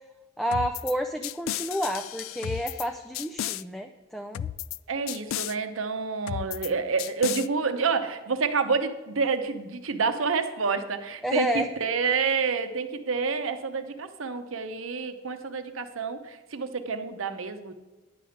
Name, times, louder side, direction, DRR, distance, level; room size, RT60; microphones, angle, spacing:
voice 1, 0.4-4.5 11.2-11.7, equal, ahead, 5 dB, 0.4 m, -30 dB
sound 1, 0.5-0.9 1.2-2.9 3.1-3.6 4.3-4.8 5.1-5.5 6.3-6.7 7.0-7.5, left 11 dB, 75° left, 0.3 m, -33 dB
voice 2, 4.9-17.7, right 5 dB, 75° right, 8 dB, 0.8 m, -28 dB
10.5 x 5.1 x 7.8 m, 1.2 s
head